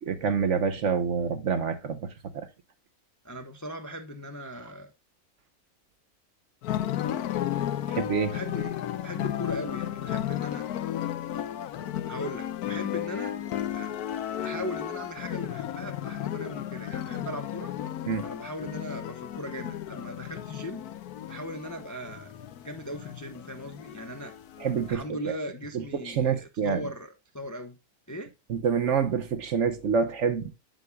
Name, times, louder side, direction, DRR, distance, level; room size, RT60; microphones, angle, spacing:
voice 1, 0.1-2.5 7.9-8.3 18.1-18.2 24.6-25.0 26.0-26.8 28.5-30.5, right 6 dB, 60° right, 1.0 m, -27 dB
voice 2, 3.2-4.9 8.3-8.7 9.0-10.7 12.1-13.4 13.7-13.9 14.4-17.7 18.2-20.9 21.3-22.3 22.6-24.3 24.9-27.8 28.1-28.3, equal, 20° left, 0.6 m, -38 dB
sound 1, 6.6-25.0, left 11 dB, 90° left, 1.2 m, -34 dB
8.1 x 7.7 x 2.2 m
omnidirectional pair, 1.6 m